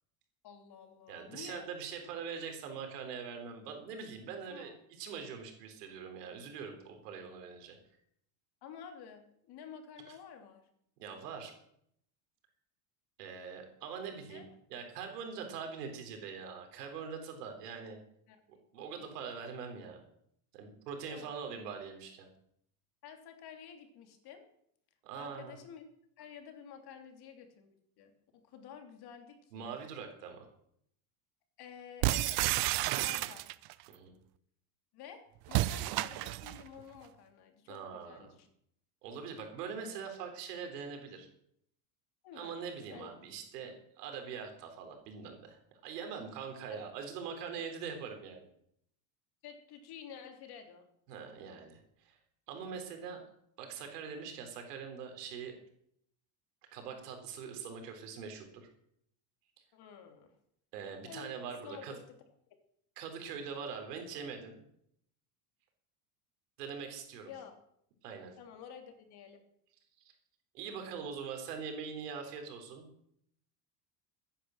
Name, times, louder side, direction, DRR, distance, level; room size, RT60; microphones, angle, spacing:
voice 1, 0.4-1.7 4.5-4.7 8.6-10.7 14.3-14.5 18.3-18.6 19.0-19.1 21.1-21.3 23.0-24.4 25.1-25.8 26.2-29.8 31.6-32.7 33.0-33.5 34.9-38.5 42.2-42.6 42.9-43.1 46.7-46.8 47.6-47.7 49.4-50.9 59.7-60.3 61.0-62.0 67.3-67.5 68.4-69.4, left 8 dB, 55° left, 5 dB, 3.2 m, -51 dB
voice 2, 1.1-4.7 5.0-7.8 11.0-11.5 13.2-14.4 14.7-18.0 18.7-20.0 20.5-22.3 25.0-25.6 29.5-30.5 32.9-33.1 33.9-34.1 37.7-38.3 39.0-41.3 42.3-48.5 51.1-52.2 52.5-53.2 53.6-55.5 56.7-58.7 60.7-62.0 63.0-64.6 66.6-67.3 68.0-68.4 70.5-72.8, right 6 dB, 90° right, 4 dB, 4.0 m, -43 dB
sound 1, 32.0-33.7 35.5-36.6, right 17 dB, 55° right, 0.8 m, -31 dB
14.5 x 10.0 x 6.5 m, 0.70 s
supercardioid pair, 105°, 46 cm